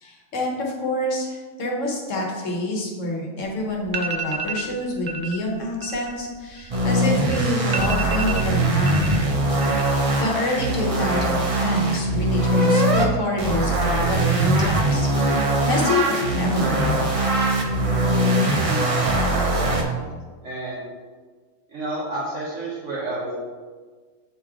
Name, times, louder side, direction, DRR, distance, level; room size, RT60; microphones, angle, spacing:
voice 1, 0.0-9.5 9.8-16.0 16.3-17.1 18.5-18.6, left 1 dB, 65° left, -1 dB, 1.5 m, -27 dB
sound 1, 3.4-3.5 3.8-4.7 5.1-5.4 5.7-7.1 7.4-7.5 7.7-9.2 9.5-10.1 10.4-10.9, right 5 dB, 85° right, 0.3 m, -30 dB
sound 2, 6.7-13.1 13.4-19.8, right 1 dB, 35° right, 0.6 m, -21 dB
voice 2, 18.7-19.7 20.4-20.8 21.7-23.4, right 2 dB, 65° right, -6 dB, 1.2 m, -30 dB
8.8 x 3.2 x 3.7 m, 1.5 s
omnidirectional pair, 1.4 m